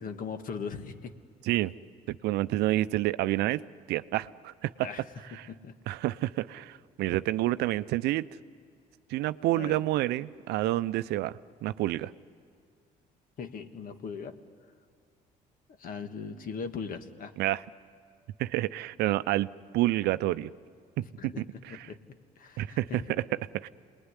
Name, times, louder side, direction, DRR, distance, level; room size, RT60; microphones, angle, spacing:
voice 1, 0.0-1.1 4.8-5.0 5.3-5.7 9.5-9.8 13.4-14.4 15.8-17.3 21.2-21.4 21.7-22.0 22.4-23.1, left 5 dB, 55° left, 8 dB, 1.7 m, -39 dB
voice 2, 2.1-3.6 3.9-4.9 5.3-5.5 5.9-8.3 9.1-12.1 17.4-17.6 18.4-20.5 21.0-21.9 22.6-23.0 23.5-23.7, right 16 dB, 80° right, 15 dB, 0.6 m, -29 dB
27.5 x 20.5 x 9.9 m, 2.1 s
cardioid pair, 95°, 17 cm